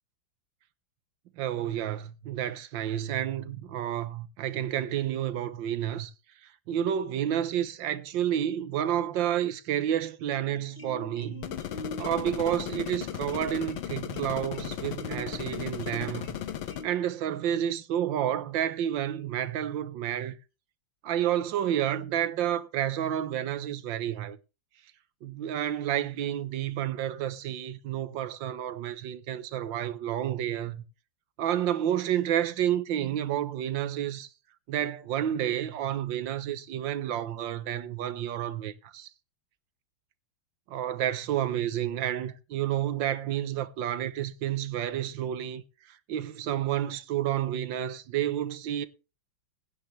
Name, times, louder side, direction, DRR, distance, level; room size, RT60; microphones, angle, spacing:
voice 1, 1.4-6.1 6.4-11.4 12.0-16.4 16.8-20.4 21.0-24.4 25.2-30.8 31.4-34.3 34.7-39.1 40.7-45.6 45.9-48.9, right 11 dB, 75° right, 1.7 m, -30 dB
sound 1, 10.2-16.9, left 3 dB, 30° left, 2.0 m, -44 dB
sound 2, 11.4-16.8, left 10 dB, 90° left, 1.7 m, -36 dB
16.5 x 9.8 x 3.3 m
omnidirectional pair, 2.1 m